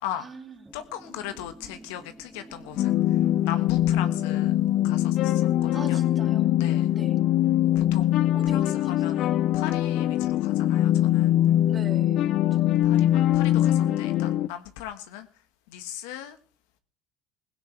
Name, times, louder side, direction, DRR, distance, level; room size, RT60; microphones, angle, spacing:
voice 1, 0.2-0.7 5.7-6.5 6.9-7.2 8.3-9.2 11.7-12.6, right 5 dB, 30° right, 2.8 m, -43 dB
sound 1, 0.6-6.0, right 1 dB, 5° right, 2.3 m, -50 dB
voice 2, 0.7-4.5 4.8-6.0 6.6-6.9 7.7-8.1 8.5-11.4 12.8-15.3 15.7-16.4, left 11 dB, 80° left, 1.4 m, -38 dB
sound 2, 2.8-14.5, left 12 dB, 60° left, 0.6 m, -22 dB
17.0 x 16.5 x 3.3 m
supercardioid pair, 90°, 0 cm